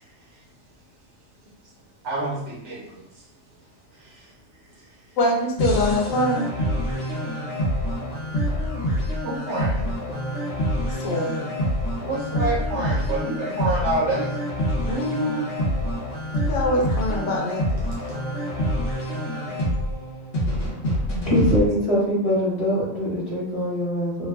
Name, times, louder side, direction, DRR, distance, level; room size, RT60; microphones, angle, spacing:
voice 1, 2.0-2.8 9.2-9.9 12.0-14.3, right 2 dB, 65° right, -2 dB, 0.9 m, -27 dB
voice 2, 5.2-6.5 11.0-11.5 14.9-15.5 16.5-17.9, left 1 dB, 75° left, -1 dB, 1.0 m, -24 dB
sound 1, 5.6-21.6, equal, 50° left, 1.0 m, -26 dB
voice 3, 21.2-24.3, equal, 25° left, -7 dB, 1.1 m, -23 dB
2.5 x 2.3 x 3.4 m, 0.82 s
omnidirectional pair, 1.4 m